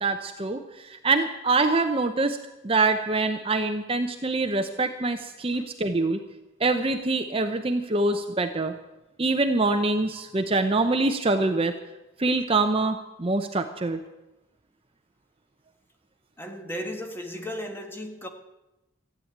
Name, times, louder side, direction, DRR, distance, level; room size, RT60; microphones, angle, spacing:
voice 1, 0.0-2.4 2.6-6.2 6.6-8.7 9.2-11.7 12.2-14.0, right 3 dB, 25° right, 0.7 m, -25 dB
voice 2, 16.4-18.3, equal, 10° left, 1.5 m, -35 dB
14.5 x 9.5 x 8.7 m
head